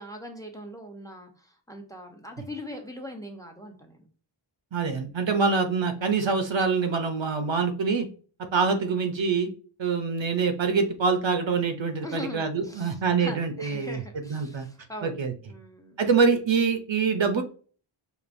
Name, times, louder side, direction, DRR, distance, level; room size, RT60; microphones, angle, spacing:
voice 1, 0.0-4.1 12.0-15.1 15.5-16.0, left 1 dB, 5° left, 4 dB, 0.8 m, -41 dB
voice 2, 4.7-8.1 8.5-9.5 9.8-14.7 15.0-15.3 16.0-17.4, right 5 dB, 65° right, 6 dB, 0.7 m, -25 dB
5.0 x 2.5 x 2.6 m, 0.40 s
wide cardioid pair, 50°, 49 cm